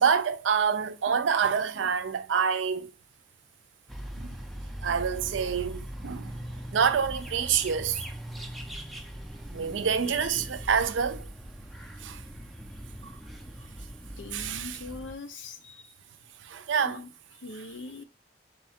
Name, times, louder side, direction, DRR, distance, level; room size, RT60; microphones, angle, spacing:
voice 1, 0.0-2.9 4.2-4.4 4.8-6.3 6.7-8.0 9.5-11.3 12.0-12.2 13.0-13.1 14.3-14.9 16.4-17.0, right 6 dB, 90° right, 0.5 m, -27 dB
sound 1, 3.9-15.1, equal, ahead, 0.3 m, -41 dB
voice 2, 14.2-15.9 16.8-17.1 17.4-18.0, left 3 dB, 85° left, 0.6 m, -41 dB
3.9 x 2.4 x 4.2 m
head